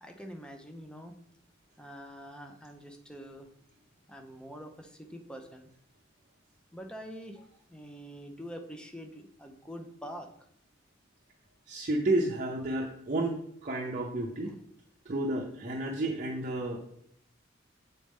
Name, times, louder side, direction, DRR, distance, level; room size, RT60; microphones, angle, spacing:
voice 1, 0.0-1.2 1.8-3.5 4.1-5.7 6.7-10.3, equal, 5° left, 5 dB, 0.6 m, -45 dB
voice 2, 11.7-14.5 15.1-16.8, right 2 dB, 40° right, -2 dB, 0.7 m, -31 dB
7.5 x 4.2 x 3.5 m, 0.69 s
head